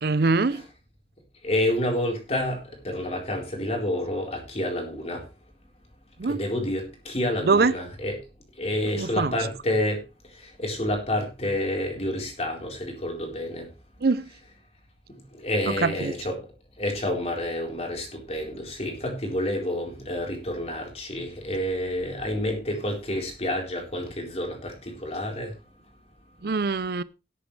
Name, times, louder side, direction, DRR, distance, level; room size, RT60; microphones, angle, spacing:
voice 1, 0.0-0.6 6.2-6.4 7.5-7.7 9.0-9.4 14.0-14.3 15.8-16.1 26.4-27.0, right 4 dB, 60° right, 0.6 m, -23 dB
voice 2, 1.4-5.3 6.3-8.2 8.6-10.0 10.3-13.7 15.3-16.4 16.8-25.5, left 1 dB, 35° left, 4.1 m, -29 dB
18.0 x 8.3 x 3.3 m
head